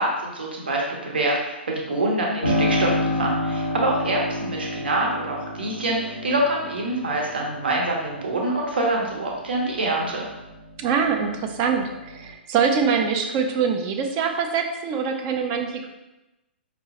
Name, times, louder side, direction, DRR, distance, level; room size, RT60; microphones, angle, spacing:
voice 1, 0.0-10.3, right 2 dB, 65° right, -1 dB, 0.9 m, -25 dB
Piano, 2.4-10.9 11.3-12.3, left 1 dB, 85° right, 1.1 m, -29 dB
voice 2, 10.8-15.9, right 6 dB, 30° right, 5 dB, 0.4 m, -24 dB
5.1 x 2.1 x 2.9 m, 0.99 s
figure-of-eight pair, 115°, 6 cm